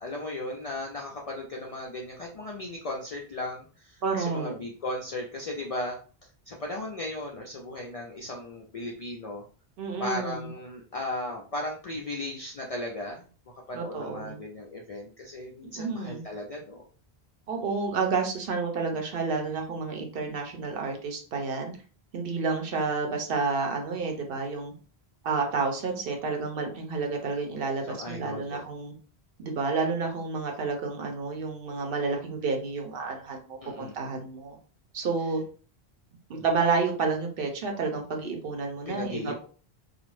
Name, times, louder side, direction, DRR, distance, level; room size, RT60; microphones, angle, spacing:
voice 1, 0.0-6.0 6.5-9.4 10.0-13.3 13.7-16.9 27.9-28.6 33.6-33.9 38.9-39.5, left 2 dB, 55° left, -1 dB, 0.4 m, -36 dB
voice 2, 4.0-4.5 9.8-10.5 13.7-14.4 15.8-16.2 17.5-21.7 22.1-24.7 25.2-28.9 29.4-34.6 34.9-35.4 36.3-39.3, right 4 dB, 65° right, 3 dB, 0.8 m, -30 dB
2.4 x 2.0 x 3.0 m, 0.39 s
omnidirectional pair, 1.1 m